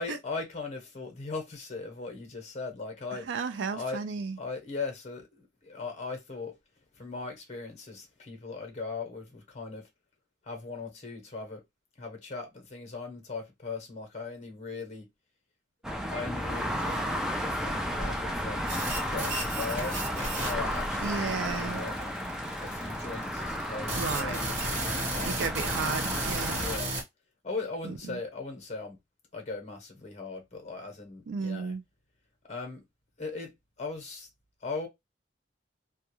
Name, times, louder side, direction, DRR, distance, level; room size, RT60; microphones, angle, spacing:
voice 1, 0.0-3.3 3.7-4.1 4.4-6.6 6.9-9.9 10.4-11.6 12.0-15.1 16.1-17.1 17.4-18.6 19.1-22.1 22.6-24.5 25.1-25.7 26.5-27.0 27.4-29.0 29.3-31.8 32.5-32.8 33.2-34.3 34.6-34.9, left 3 dB, 40° left, 0.8 m, -39 dB
voice 2, 3.3-4.4 21.0-21.8 23.9-24.4 25.2-26.7 27.8-28.2 31.3-31.8, right 5 dB, 90° right, 0.4 m, -33 dB
sound 1, 15.8-26.8, equal, 5° right, 0.3 m, -33 dB
sound 2, 18.7-27.0, right 2 dB, 40° right, 1.1 m, -34 dB
2.3 x 2.2 x 2.9 m
head